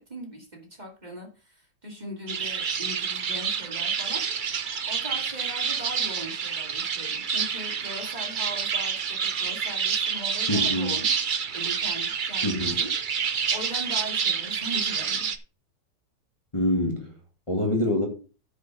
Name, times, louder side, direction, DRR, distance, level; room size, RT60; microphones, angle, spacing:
voice 1, 0.0-11.1 11.5-15.3, equal, 25° right, 2.4 m, -40 dB
sound 1, 2.3-15.4, right 6 dB, 60° right, 0.5 m, -28 dB
voice 2, 10.5-10.9 12.4-12.7 16.5-17.1 17.5-18.1, left 1 dB, 15° left, 1.9 m, -25 dB
9.5 x 5.6 x 5.9 m
omnidirectional pair, 1.9 m